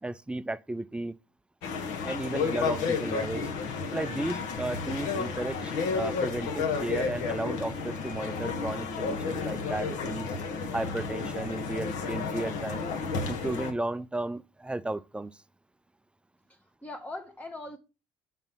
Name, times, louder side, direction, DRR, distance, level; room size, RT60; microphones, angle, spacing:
voice 1, 0.0-1.2 2.0-3.5 3.9-10.3 10.7-12.9 13.3-15.4, right 2 dB, 10° right, 0.4 m, -34 dB
sound 1, 1.6-13.7, left 5 dB, 75° left, 1.3 m, -32 dB
voice 2, 16.5-17.8, left 2 dB, 10° left, 0.9 m, -41 dB
5.7 x 4.1 x 5.4 m
supercardioid pair, 85°, 13 cm